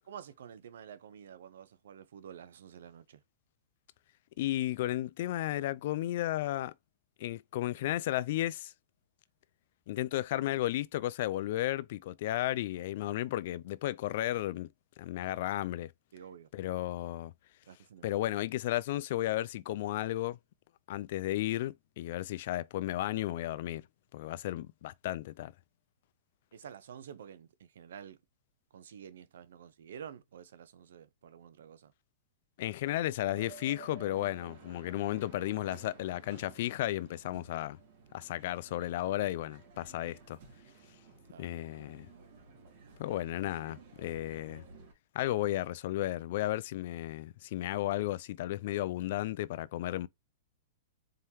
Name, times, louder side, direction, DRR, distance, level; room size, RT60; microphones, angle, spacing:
voice 1, 0.1-3.2 16.1-16.5 17.7-18.1 26.5-28.2 28.7-31.9 41.3-41.5, right 8 dB, 75° right, 0.6 m, -49 dB
voice 2, 4.4-6.7 7.2-8.7 9.9-14.7 15.0-15.9 16.5-17.3 18.0-20.4 20.9-23.9 24.1-25.5 32.6-37.8 38.1-40.4 41.4-42.1 43.0-44.6 45.1-50.1, left 14 dB, 60° left, 0.3 m, -34 dB
sound 1, 33.3-44.9, right 5 dB, 55° right, 2.2 m, -54 dB
4.4 x 3.7 x 2.8 m
hypercardioid pair, 140°, 0 cm